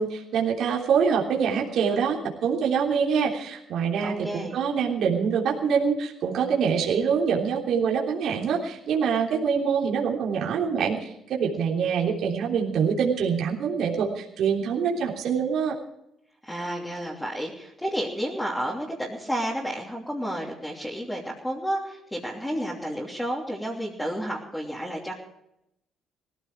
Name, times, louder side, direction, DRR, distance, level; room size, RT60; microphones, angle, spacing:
voice 1, 0.0-15.8, right 6 dB, 65° right, -3 dB, 3.3 m, -25 dB
voice 2, 4.0-4.6 16.4-25.1, equal, 5° left, -5 dB, 3.0 m, -31 dB
19.0 x 14.5 x 4.8 m, 0.83 s
cardioid pair, 120°, 0 cm